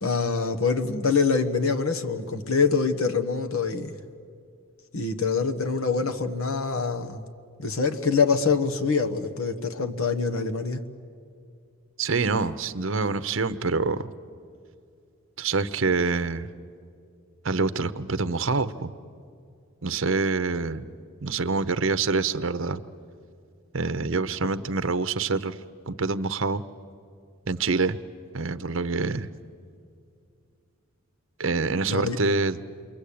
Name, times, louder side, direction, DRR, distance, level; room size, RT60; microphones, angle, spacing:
voice 1, 0.0-3.9 4.9-7.3 7.6-10.8 31.9-32.2, left 5 dB, 75° left, 7 dB, 1.3 m, -25 dB
voice 2, 12.0-14.1 15.4-16.5 17.4-18.9 19.8-20.8 21.2-22.8 23.7-25.6 25.8-26.6 27.5-28.0 28.3-29.3 31.4-32.6, right 4 dB, 60° right, 12 dB, 0.8 m, -26 dB
28.5 x 22.5 x 8.6 m, 2.3 s
head